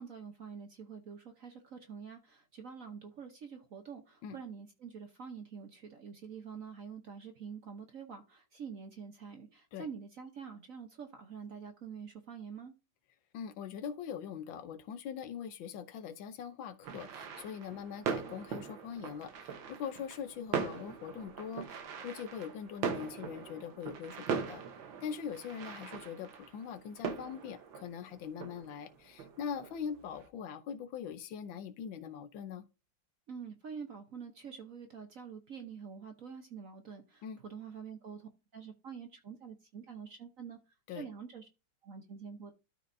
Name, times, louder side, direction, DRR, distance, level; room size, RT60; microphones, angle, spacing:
voice 1, 0.0-12.7 33.3-40.6 40.9-41.5 41.8-42.5, right 6 dB, 55° right, 1.1 m, -46 dB
voice 2, 13.3-24.6 25.0-32.6 37.2-37.4 40.9-41.1, left 7 dB, 90° left, 1.6 m, -42 dB
sound 1, 16.8-30.3, right 6 dB, 85° right, 1.8 m, -41 dB
13.0 x 4.6 x 2.6 m
omnidirectional pair, 2.0 m